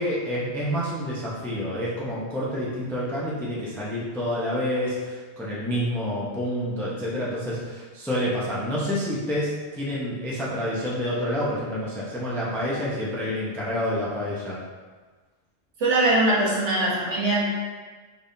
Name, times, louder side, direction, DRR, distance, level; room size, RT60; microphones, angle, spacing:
voice 1, 0.0-14.6, equal, 5° left, -7 dB, 0.3 m, -28 dB
voice 2, 15.8-17.5, right 2 dB, 60° right, -5 dB, 1.2 m, -21 dB
4.3 x 3.5 x 2.6 m, 1.4 s
omnidirectional pair, 1.4 m